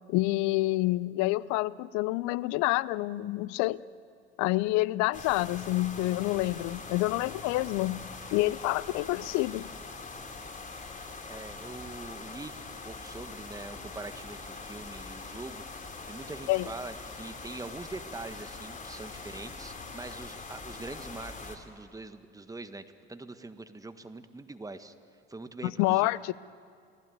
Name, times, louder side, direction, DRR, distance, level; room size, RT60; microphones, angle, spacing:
voice 1, 0.1-3.8 4.4-8.0 8.3-9.7 16.5-16.7 25.6-26.3, left 19 dB, 60° left, 21 dB, 0.7 m, -28 dB
sound 1, 5.1-21.6, left 4 dB, 25° left, 3.7 m, -43 dB
voice 2, 11.3-15.6 16.1-24.9 25.3-26.1, right 2 dB, 10° right, 10 dB, 1.5 m, -43 dB
29.5 x 19.5 x 9.4 m, 2.2 s
hypercardioid pair, 65°, 32 cm